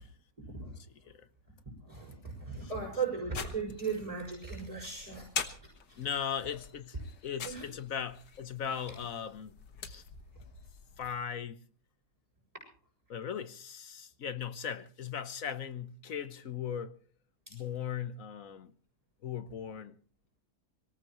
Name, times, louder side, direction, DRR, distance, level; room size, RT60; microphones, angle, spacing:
voice 1, 0.4-0.8 1.8-5.3 5.9-6.1 7.4-7.7 17.5-17.6, right 5 dB, 20° right, 6.6 m, -37 dB
sound 1, 3.3-11.1, left 6 dB, 80° left, 2.0 m, -44 dB
voice 2, 6.0-9.5 9.8-10.0 11.0-11.6 13.1-17.0 17.5-18.7 19.2-19.9, left 8 dB, 55° left, 1.3 m, -38 dB
24.5 x 18.0 x 3.1 m
omnidirectional pair, 1.8 m